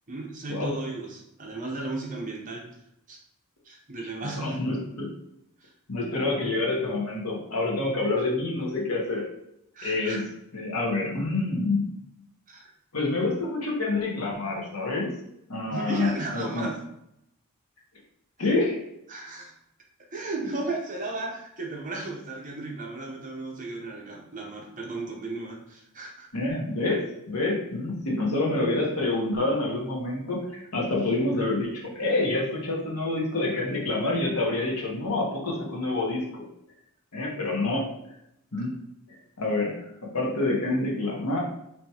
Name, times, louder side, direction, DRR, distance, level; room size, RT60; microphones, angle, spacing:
voice 1, 0.1-2.8 3.1-3.2 3.6-4.6 5.6-5.7 9.7-10.2 12.5-12.7 15.7-16.8 18.4-18.5 19.1-19.5 20.1-26.3, right 2 dB, 35° right, 0 dB, 0.8 m, -35 dB
voice 2, 4.2-5.1 5.9-9.2 9.8-10.2 10.5-12.0 12.9-15.1 15.5-16.7 18.4-18.8 26.3-36.5 37.1-37.9 38.5-38.7 39.1-41.4, left 2 dB, 85° left, -2 dB, 1.2 m, -27 dB
4.4 x 3.1 x 2.9 m, 0.79 s
head